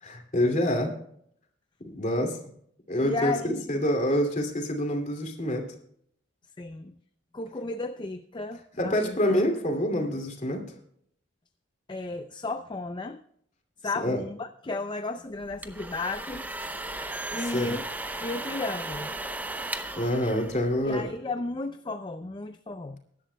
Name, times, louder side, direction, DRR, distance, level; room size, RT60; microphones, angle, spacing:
voice 1, 0.0-0.9 1.8-2.4 2.9-5.7 8.8-10.6 14.0-14.2 17.5-17.7 19.9-21.1, equal, 40° left, 3 dB, 2.6 m, -27 dB
voice 2, 3.0-3.6 6.6-7.0 7.3-9.2 11.9-13.2 13.8-16.5 17.3-17.9 18.2-19.1 20.8-23.0, left 3 dB, 25° left, 8 dB, 0.5 m, -34 dB
sound 1, 15.4-21.1, right 2 dB, 10° right, 0.7 m, -36 dB
22.5 x 11.5 x 2.3 m, 0.69 s
head